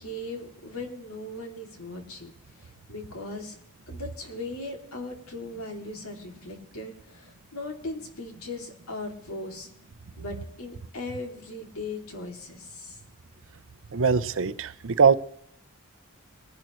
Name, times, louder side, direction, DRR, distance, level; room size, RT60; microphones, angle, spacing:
voice 1, 0.0-3.6 3.9-9.7 10.2-13.0, left 2 dB, 80° left, 2 dB, 2.6 m, -38 dB
voice 2, 13.9-15.1, right 5 dB, 65° right, 14 dB, 0.6 m, -21 dB
20.5 x 10.5 x 3.1 m, 0.70 s
head